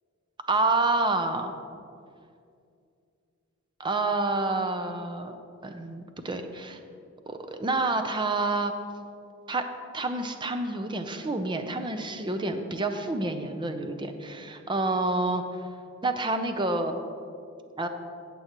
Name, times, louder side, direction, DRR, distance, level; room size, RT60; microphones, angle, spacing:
voice 1, 0.5-1.5 3.8-5.4 5.6-6.8 7.3-8.7 9.5-9.7 9.9-15.6 16.0-17.0 17.8-17.9, right 2 dB, 25° right, 6 dB, 0.6 m, -28 dB
15.5 x 7.0 x 3.0 m, 2.4 s
head